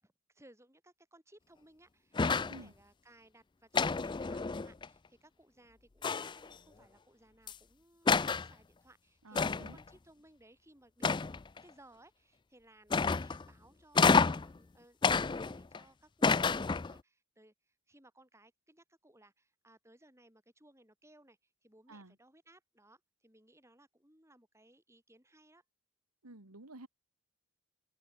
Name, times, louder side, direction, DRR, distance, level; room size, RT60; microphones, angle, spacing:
voice 1, 0.0-11.3 11.6-25.6, right 1 dB, 10° right, 5.0 m, -63 dB
sound 1, 2.1-2.6 3.7-4.9 6.0-6.5 7.5-7.6 8.1-8.5 9.3-9.8 11.0-11.6 12.9-13.4 13.9-14.5 15.0-15.8 16.2-17.0, left 4 dB, 20° left, 0.3 m, -29 dB
voice 2, 9.2-9.8 21.9-22.1 26.2-26.9, right 2 dB, 85° right, 2.3 m, -51 dB
open air
head